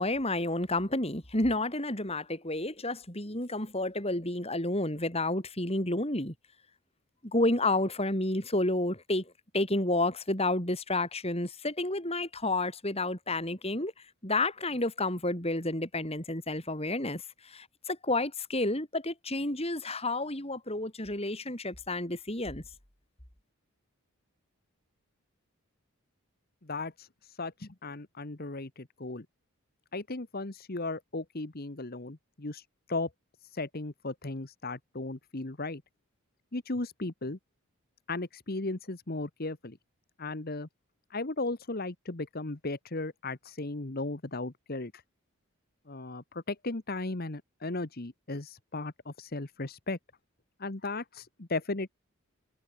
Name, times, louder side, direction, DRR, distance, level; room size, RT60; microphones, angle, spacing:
voice 1, 0.0-6.3 7.2-13.9 14.2-22.6, left 2 dB, 25° left, 4.7 m, -30 dB
voice 2, 26.6-29.2 29.9-33.1 33.4-35.8 36.5-37.4 38.1-39.8 40.2-40.7 41.1-45.0 45.9-50.0 50.6-51.9, left 2 dB, 45° left, 1.3 m, -36 dB
head